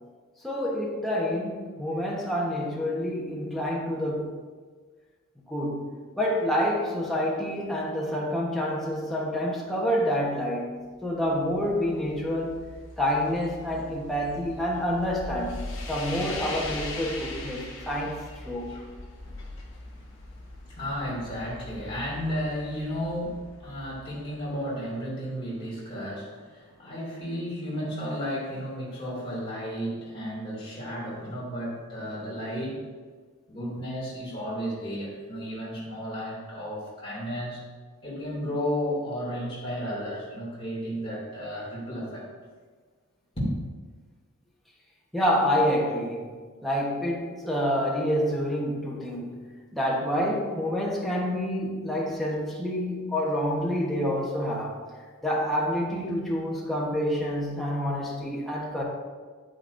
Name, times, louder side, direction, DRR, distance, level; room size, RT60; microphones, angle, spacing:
voice 1, 0.4-4.4 5.5-5.9 6.2-10.7 11.0-12.6 13.0-15.6 15.9-18.7 45.1-46.3 46.6-49.4 49.7-54.8 55.2-58.8, equal, ahead, -5 dB, 1.1 m, -28 dB
sound 1, 10.8-25.0, left 2 dB, 60° left, 1.1 m, -41 dB
voice 2, 20.7-32.8 33.5-37.6 38.0-42.3 43.4-43.5, equal, 25° left, -6 dB, 2.5 m, -33 dB
9.0 x 8.9 x 2.6 m, 1.5 s
head